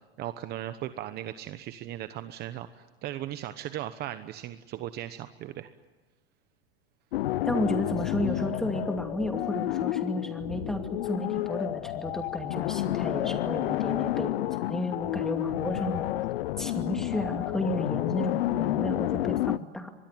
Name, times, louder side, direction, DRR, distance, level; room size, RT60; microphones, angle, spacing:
voice 1, 0.2-5.7, right 13 dB, 30° right, 11 dB, 1.1 m, -37 dB
sound 1, 7.1-19.6, left 15 dB, 70° left, 0.8 m, -30 dB
voice 2, 7.5-16.1 16.6-19.9, equal, ahead, 5 dB, 2.4 m, -33 dB
24.5 x 21.0 x 9.3 m, 1.2 s
supercardioid pair, 140°, 31 cm